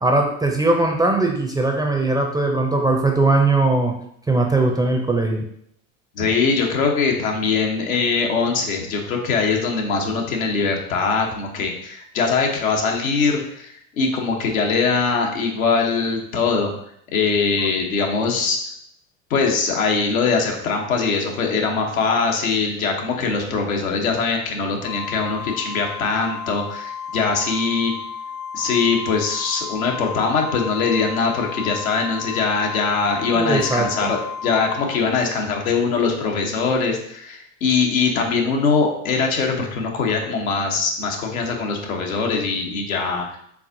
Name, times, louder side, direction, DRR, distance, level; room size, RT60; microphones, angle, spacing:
voice 1, 0.0-3.9 4.3-5.4 33.3-34.1, right 2 dB, 10° right, 1 dB, 0.4 m, -19 dB
voice 2, 6.1-16.7 17.1-18.6 19.3-27.9 28.5-43.4, left 4 dB, 85° left, 1 dB, 1.0 m, -22 dB
Organ, 24.8-35.6, left 6 dB, 50° left, 0.8 m, -33 dB
4.7 x 3.5 x 2.6 m, 0.69 s
hypercardioid pair, 90°, 41 cm